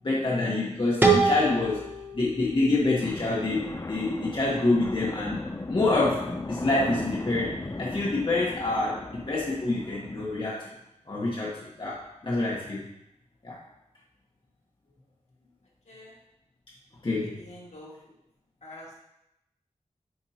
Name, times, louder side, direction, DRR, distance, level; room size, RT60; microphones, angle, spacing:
voice 1, 0.0-1.8 2.1-5.4 5.7-10.6 11.1-12.8 13.4-13.6 17.0-17.3, left 2 dB, 40° left, -5 dB, 1.2 m, -27 dB
sound 1, 1.0-3.9, right 4 dB, 15° right, 1.0 m, -26 dB
sound 2, 3.0-10.4, left 2 dB, 25° left, 0.5 m, -37 dB
voice 2, 17.0-18.1 18.6-18.9, left 1 dB, 65° left, -4 dB, 1.9 m, -46 dB
9.6 x 4.5 x 2.9 m, 0.84 s
wide cardioid pair, 105°, 12 cm